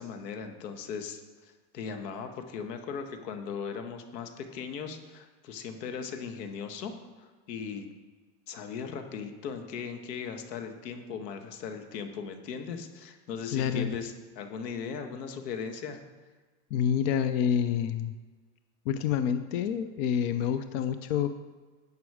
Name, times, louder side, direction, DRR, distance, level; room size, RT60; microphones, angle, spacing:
voice 1, 0.0-6.9 7.2-7.9 8.5-16.0, left 6 dB, 80° left, 6 dB, 1.6 m, -38 dB
voice 2, 13.5-14.0 16.7-18.1 18.9-21.3, left 8 dB, 40° left, 11 dB, 0.5 m, -28 dB
11.5 x 8.2 x 4.9 m, 1.3 s
supercardioid pair, 150°, 48 cm